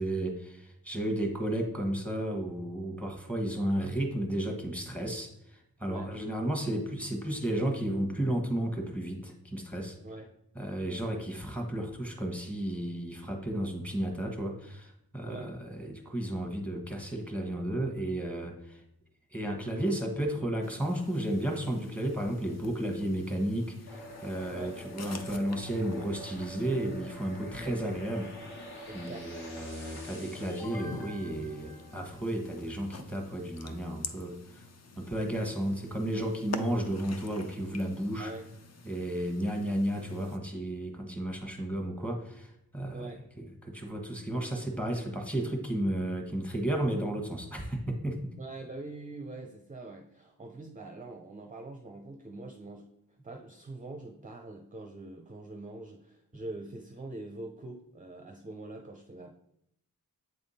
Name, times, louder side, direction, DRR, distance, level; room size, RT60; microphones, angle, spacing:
voice 1, 0.0-10.0 10.5-18.8 19.3-28.7 28.9-34.7 35.0-38.3 38.8-43.0 43.4-48.3, right 1 dB, 5° left, 1 dB, 1.2 m, -33 dB
sound 1, 20.6-40.4, left 4 dB, 45° left, 0.5 m, -48 dB
sound 2, 23.9-32.5, equal, 75° left, 1.5 m, -46 dB
voice 2, 28.9-29.3 38.2-38.5 42.9-43.2 48.4-52.8 53.2-59.3, right 2 dB, 20° right, 4 dB, 0.5 m, -43 dB
8.1 x 3.5 x 4.1 m, 0.78 s
wide cardioid pair, 90°, 38 cm